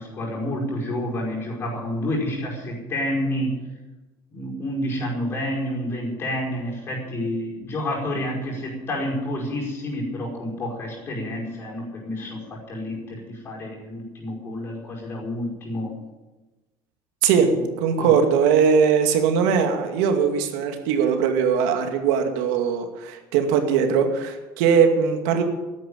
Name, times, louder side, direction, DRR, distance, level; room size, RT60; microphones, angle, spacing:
voice 1, 0.0-3.6 4.3-15.9 18.0-18.1, left 1 dB, 25° left, -2 dB, 5.2 m, -29 dB
voice 2, 17.8-25.4, right 7 dB, 85° right, 5 dB, 2.3 m, -20 dB
13.5 x 11.0 x 8.8 m, 1.1 s
cardioid pair, 175°, 9 cm